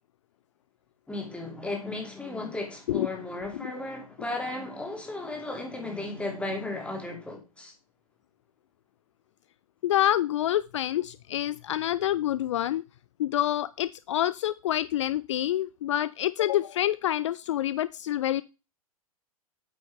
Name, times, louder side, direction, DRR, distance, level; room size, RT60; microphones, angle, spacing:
voice 1, 1.1-7.7, left 2 dB, 5° left, 2.4 m, -35 dB
voice 2, 9.8-12.8 13.2-18.4, left 12 dB, 55° left, 0.4 m, -27 dB
9.0 x 6.9 x 3.4 m
figure-of-eight pair, 105°, 19 cm